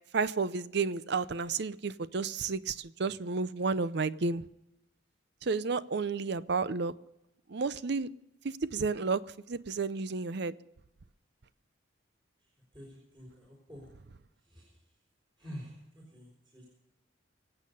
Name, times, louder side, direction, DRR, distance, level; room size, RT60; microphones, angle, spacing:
voice 1, 0.1-4.4 5.4-6.9 7.5-8.1 8.6-9.2 9.5-10.5, right 4 dB, 60° right, 16 dB, 0.6 m, -31 dB
voice 2, 13.1-13.8 15.4-15.7 16.1-16.2 16.5-16.7, equal, 25° right, -4 dB, 4.9 m, -45 dB
24.5 x 8.5 x 5.5 m, 0.89 s
head